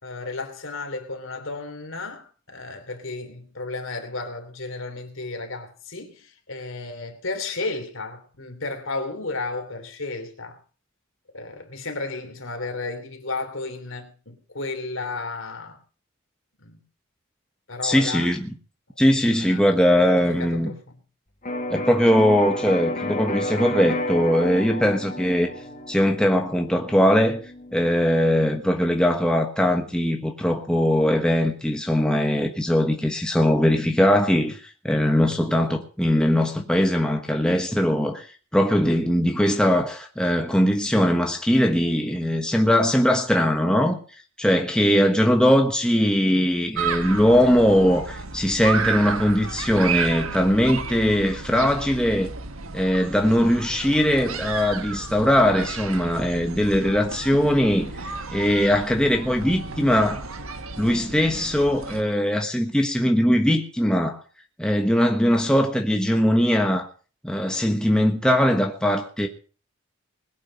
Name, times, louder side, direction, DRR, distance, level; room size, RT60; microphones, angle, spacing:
voice 1, 0.0-10.6 11.3-15.8 16.6-16.8 17.7-18.3 19.2-19.8 20.3-21.0, left 3 dB, 65° left, 3.1 m, -33 dB
voice 2, 17.8-18.5 19.0-20.7 21.7-25.5 25.9-27.4 27.7-44.0 44.4-52.3 52.7-57.9 58.3-60.3 60.8-64.2 64.6-66.9 67.2-69.3, equal, 5° left, 1.3 m, -20 dB
Electric guitar, 21.4-29.2, left 1 dB, 35° left, 2.0 m, -32 dB
sound 1, 46.7-62.0, right 5 dB, 75° right, 1.4 m, -32 dB
20.5 x 8.9 x 5.4 m
head